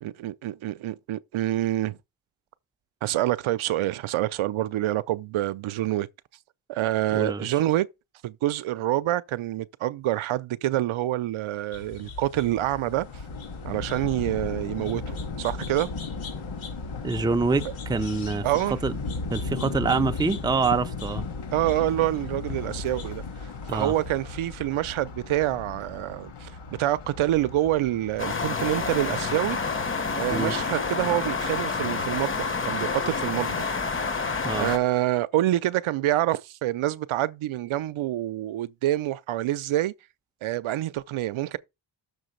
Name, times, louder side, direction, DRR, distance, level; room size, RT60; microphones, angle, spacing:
voice 1, 0.0-2.0 3.0-6.1 6.7-7.9 8.2-13.1 13.6-15.9 18.4-18.8 21.5-26.5 26.8-29.6 30.2-33.7 34.6-39.9 40.4-41.6, right 14 dB, 80° right, 0.7 m, -27 dB
voice 2, 7.1-7.5 17.0-18.9 19.3-21.2 23.7-23.9 30.3-30.6 34.4-34.7, right 4 dB, 10° right, 0.4 m, -26 dB
sound 1, 11.7-24.6, left 4 dB, 80° left, 2.7 m, -43 dB
Thunder, 12.9-30.3, left 4 dB, 60° left, 1.6 m, -36 dB
sound 2, 28.2-34.8, left 4 dB, 25° left, 0.8 m, -28 dB
6.6 x 4.0 x 6.5 m
wide cardioid pair, 145°, 48 cm